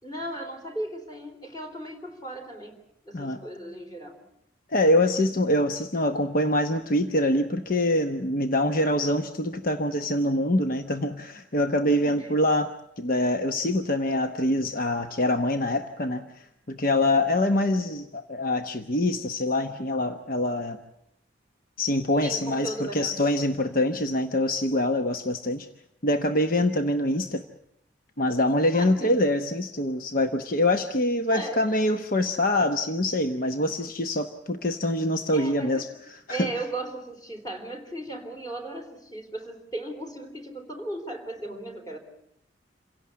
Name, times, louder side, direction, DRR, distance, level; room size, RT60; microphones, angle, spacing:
voice 1, 0.0-2.7 3.1-4.2 12.0-12.3 22.2-23.1 28.7-29.1 31.3-31.6 35.3-35.8 36.3-42.0, right 1 dB, 20° left, 4 dB, 3.6 m, -36 dB
voice 2, 4.7-20.8 21.8-25.7 26.0-27.4 28.2-35.9 36.3-36.5, left 1 dB, 45° left, 6 dB, 1.0 m, -25 dB
27.5 x 17.0 x 8.5 m, 0.77 s
head